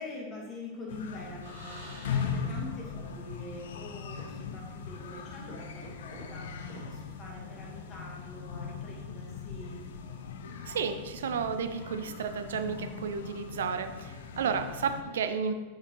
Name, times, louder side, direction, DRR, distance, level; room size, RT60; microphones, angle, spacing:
voice 1, 0.0-9.8 14.4-14.6, left 2 dB, 30° left, -2 dB, 1.7 m, -45 dB
sound 1, 0.9-15.0, left 6 dB, 60° left, 0.5 m, -39 dB
sound 2, 1.4-3.0 3.3-3.4 4.2-4.7 5.1-5.2 5.8-7.8, right 1 dB, 80° right, 1.8 m, -50 dB
voice 2, 10.6-15.5, right 6 dB, 60° right, 9 dB, 0.5 m, -32 dB
7.3 x 5.8 x 3.2 m, 1.4 s
figure-of-eight pair, 90°, 0 cm